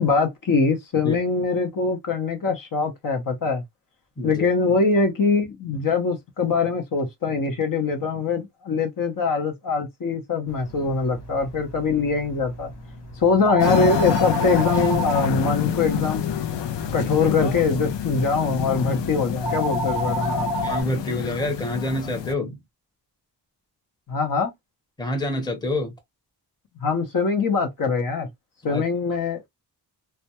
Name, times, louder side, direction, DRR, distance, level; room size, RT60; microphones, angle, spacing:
voice 1, 0.0-3.6 4.2-12.7 13.2-16.2 16.9-20.5 24.1-24.5 26.8-28.3 28.6-29.5, left 4 dB, 50° left, 0.8 m, -23 dB
voice 2, 4.2-4.5 20.6-22.6 25.0-25.9 28.7-28.9, left 1 dB, 10° left, 0.8 m, -27 dB
sound 1, 10.5-20.8, equal, 70° left, 1.1 m, -31 dB
sound 2, 13.6-22.3, left 9 dB, 90° left, 0.5 m, -28 dB
2.2 x 2.2 x 2.8 m
wide cardioid pair, 120°, 41 cm